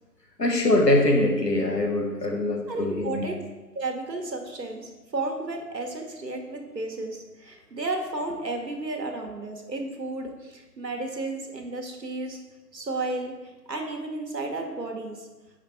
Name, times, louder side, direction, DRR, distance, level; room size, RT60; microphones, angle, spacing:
voice 1, 0.4-3.2, left 1 dB, 80° left, 1 dB, 1.2 m, -23 dB
voice 2, 2.7-3.3 3.7-12.4 12.7-15.3, right 2 dB, 80° right, 3 dB, 1.1 m, -33 dB
5.0 x 4.2 x 4.5 m, 1.2 s
figure-of-eight pair, 165°, 49 cm